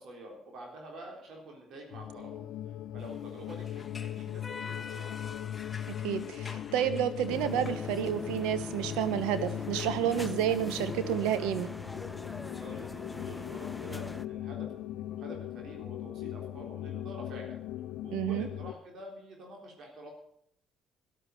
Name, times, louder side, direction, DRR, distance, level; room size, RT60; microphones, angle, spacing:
voice 1, 0.0-3.8 4.1-5.1 12.6-17.6 18.0-20.1, right 1 dB, 65° right, 1 dB, 3.7 m, -47 dB
sound 1, 1.9-18.7, left 12 dB, 80° left, 0.6 m, -39 dB
sound 2, 3.0-10.2, left 4 dB, 30° left, 1.3 m, -47 dB
voice 2, 6.0-11.7 18.1-18.5, right 10 dB, 90° right, 13 dB, 1.1 m, -30 dB
sound 3, 7.3-14.2, left 2 dB, 10° left, 0.8 m, -43 dB
12.5 x 11.5 x 6.4 m, 0.71 s
supercardioid pair, 75°, 0 cm